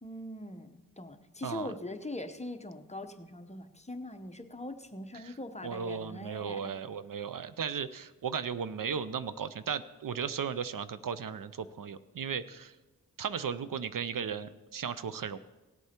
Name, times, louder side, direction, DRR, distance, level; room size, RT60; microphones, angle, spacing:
voice 1, 0.0-6.7, left 2 dB, 20° left, 6 dB, 0.8 m, -42 dB
voice 2, 1.4-1.7 5.2-5.3 5.6-12.7 13.2-15.4, right 7 dB, 65° right, 14 dB, 0.6 m, -36 dB
17.5 x 8.0 x 4.4 m, 1.1 s
wide cardioid pair, 80°, 35 cm